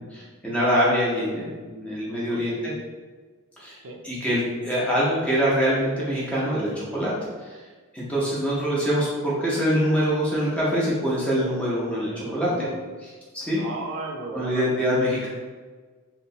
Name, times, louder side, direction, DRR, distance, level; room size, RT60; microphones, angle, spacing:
voice 1, 0.0-2.7 3.6-3.7 4.0-7.1 7.5-7.6 7.9-12.5 13.3-13.6 14.3-15.3, equal, 5° left, -7 dB, 0.6 m, -24 dB
voice 2, 2.1-2.5 3.8-4.0 12.1-12.8 13.6-14.7, right 2 dB, 60° right, 1 dB, 0.4 m, -35 dB
2.8 x 2.0 x 2.7 m, 1.4 s
head